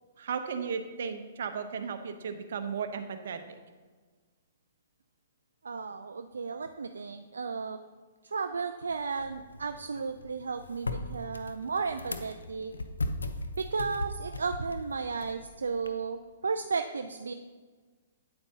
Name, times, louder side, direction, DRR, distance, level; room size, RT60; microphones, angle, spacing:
voice 1, 0.2-3.4, right 6 dB, 65° right, 7 dB, 0.8 m, -35 dB
voice 2, 5.6-7.8 8.2-12.7 13.6-17.3, right 5 dB, 80° right, 7 dB, 0.4 m, -34 dB
sound 1, 8.9-15.9, left 2 dB, 90° left, 0.7 m, -38 dB
8.9 x 8.7 x 2.8 m, 1.4 s
hypercardioid pair, 125°, 0 cm